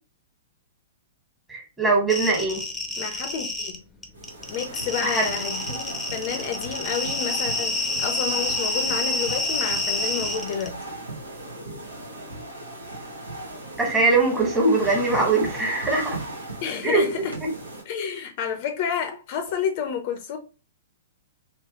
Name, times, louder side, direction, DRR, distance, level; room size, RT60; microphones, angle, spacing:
voice 1, 1.5-2.6 5.0-5.3 13.8-16.2 16.8-17.1 17.4-17.5, right 3 dB, 15° right, 1.5 m, -21 dB
sound 1, 2.1-3.8 4.0-10.7, left 2 dB, 10° left, 0.7 m, -28 dB
voice 2, 3.0-3.8 4.5-10.7 16.6-17.3 17.9-20.4, left 7 dB, 45° left, 0.6 m, -30 dB
sound 2, 4.1-17.8, right 2 dB, 85° right, 1.2 m, -37 dB
3.2 x 3.0 x 2.9 m
figure-of-eight pair, 110°, 0 cm